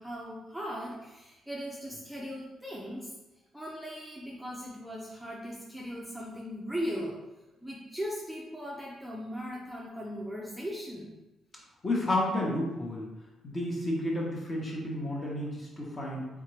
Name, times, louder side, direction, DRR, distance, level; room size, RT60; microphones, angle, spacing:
voice 1, 0.0-3.1 3.5-7.2 7.6-11.1, equal, ahead, -5 dB, 0.6 m, -38 dB
voice 2, 11.8-13.1 13.4-16.3, left 1 dB, 30° left, -3 dB, 1.0 m, -31 dB
3.6 x 3.6 x 3.2 m, 1.0 s
cardioid pair, 125°, 0 cm